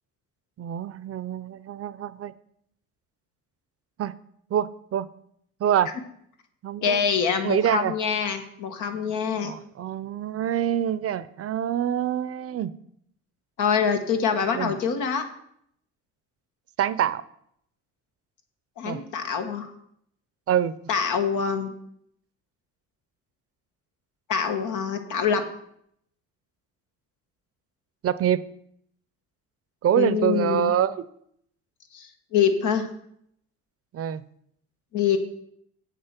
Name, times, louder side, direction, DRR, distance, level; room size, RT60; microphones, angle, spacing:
voice 1, 0.6-2.3 4.0-4.1 4.5-5.1 5.6-5.9 6.6-7.0 7.4-7.9 9.4-12.7 14.5-14.7 16.8-17.2 18.8-19.0 20.5-20.7 28.0-28.4 29.8-31.0 33.9-34.2, right 10 dB, 50° right, 16 dB, 0.5 m, -25 dB
voice 2, 6.8-9.6 13.6-15.3 18.8-19.7 20.9-21.7 24.3-25.5 29.9-30.7 31.9-32.9 34.9-35.2, left 7 dB, 85° left, 6 dB, 1.3 m, -25 dB
7.6 x 6.6 x 5.8 m, 0.71 s
cardioid pair, 90°, 30 cm